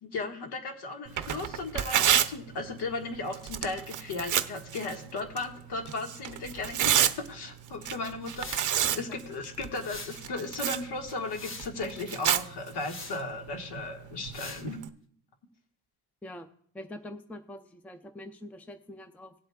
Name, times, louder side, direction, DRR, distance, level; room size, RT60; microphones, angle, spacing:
voice 1, 0.0-14.9, left 3 dB, 65° left, 4 dB, 1.6 m, -36 dB
Tearing, 1.1-14.9, right 10 dB, 45° right, 0.6 m, -32 dB
sound 1, 8.2-8.7 9.8-10.2 11.0-11.7 12.7-13.2 14.3-14.6, left 3 dB, 30° left, 1.0 m, -43 dB
voice 2, 16.7-19.3, left 1 dB, 5° left, 8 dB, 0.5 m, -44 dB
18.5 x 7.9 x 2.3 m, 0.62 s
cardioid pair, 115°, 42 cm